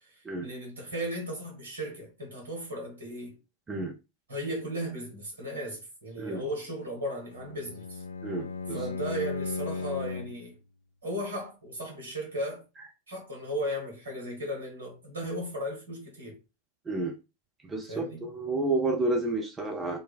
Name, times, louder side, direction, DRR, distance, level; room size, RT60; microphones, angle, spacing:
voice 1, 0.0-3.4 4.3-8.0 8.7-10.6 11.0-12.6 13.1-16.4 17.9-18.2, equal, 70° right, 1.4 m, -36 dB
Bowed string instrument, 7.3-10.5, left 4 dB, 75° left, 0.4 m, -36 dB
voice 2, 8.2-8.8 16.9-17.1 17.6-20.0, right 2 dB, 20° right, 0.7 m, -30 dB
4.1 x 2.2 x 2.3 m
figure-of-eight pair, 90°, 0 cm